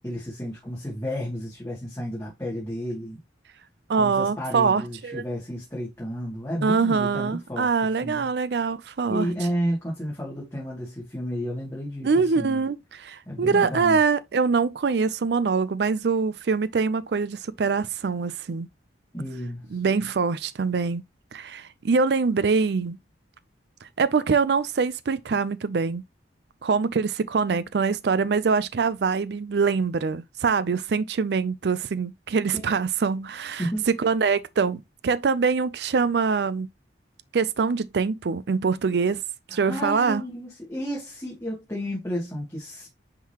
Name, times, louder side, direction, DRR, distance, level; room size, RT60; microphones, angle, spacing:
voice 1, 0.0-3.2 3.9-8.3 9.1-12.6 13.3-14.0 19.1-19.8 32.5-32.6 33.6-33.9 39.5-42.9, equal, 15° left, 2.4 m, -32 dB
voice 2, 3.9-5.2 6.6-9.3 12.0-18.7 19.7-21.0 21.3-23.0 24.0-26.0 26.6-36.7 37.3-39.2 39.5-40.2, right 5 dB, 65° right, 0.4 m, -24 dB
10.0 x 3.8 x 2.9 m
head